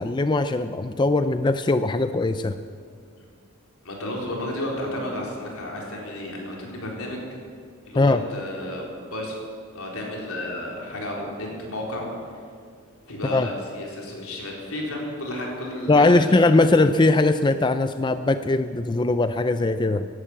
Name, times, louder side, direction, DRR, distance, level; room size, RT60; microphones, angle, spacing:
voice 1, 0.0-2.6 8.0-8.2 13.3-13.5 15.9-20.1, left 2 dB, 20° left, 10 dB, 0.4 m, -20 dB
voice 2, 3.8-7.4 7.9-9.4 9.7-12.1 13.1-16.3, left 1 dB, 80° left, -1 dB, 4.0 m, -32 dB
15.0 x 11.5 x 8.4 m, 2.1 s
head